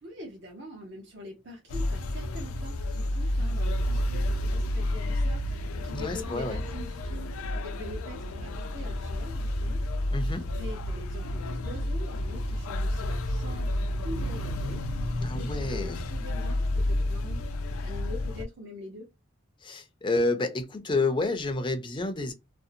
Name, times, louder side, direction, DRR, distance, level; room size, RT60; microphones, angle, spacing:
voice 1, 0.0-14.8 15.2-17.4 17.8-19.1, left 1 dB, 55° right, 0.7 m, -44 dB
sound 1, 1.7-18.4, left 1 dB, 80° left, 0.4 m, -30 dB
voice 2, 5.9-6.6 10.1-10.5 15.2-16.0 19.6-22.3, left 2 dB, 25° left, 0.4 m, -29 dB
2.6 x 2.0 x 2.5 m
head